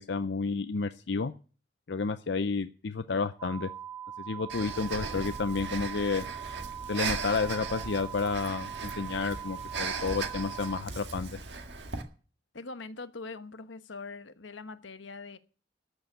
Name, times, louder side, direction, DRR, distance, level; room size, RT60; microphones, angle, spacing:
voice 1, 0.0-1.3 1.9-3.7 4.2-6.2 6.9-11.3, left 4 dB, 65° left, 0.6 m, -31 dB
sound 1, 3.4-10.8, right 9 dB, 15° right, 1.1 m, -42 dB
Breathing, 4.5-12.0, right 4 dB, 65° right, 1.8 m, -38 dB
voice 2, 12.5-15.4, left 3 dB, 85° left, 1.1 m, -42 dB
13.0 x 7.1 x 9.3 m
head